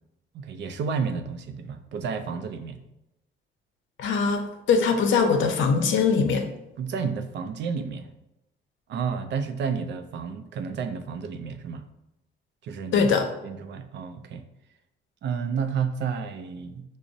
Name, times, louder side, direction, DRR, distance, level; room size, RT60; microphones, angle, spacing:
voice 1, 0.3-2.8 6.8-8.1 8.9-11.8 12.6-13.1 13.4-14.4 15.2-16.8, right 6 dB, 65° right, 8 dB, 0.4 m, -31 dB
voice 2, 4.0-6.5 12.9-13.3, left 5 dB, 75° left, 6 dB, 0.6 m, -22 dB
5.9 x 2.0 x 2.6 m, 0.91 s
cardioid pair, 90°, 20 cm